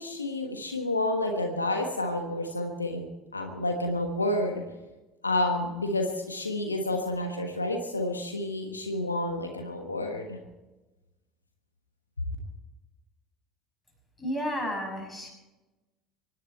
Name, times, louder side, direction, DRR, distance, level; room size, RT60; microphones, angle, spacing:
voice 1, 0.0-4.6 5.2-10.4, left 1 dB, 85° left, 4 dB, 1.3 m, -30 dB
voice 2, 14.2-15.3, equal, 10° left, 1 dB, 6.6 m, -32 dB
25.0 x 11.0 x 4.5 m, 1.1 s
figure-of-eight pair, 65°, 0 cm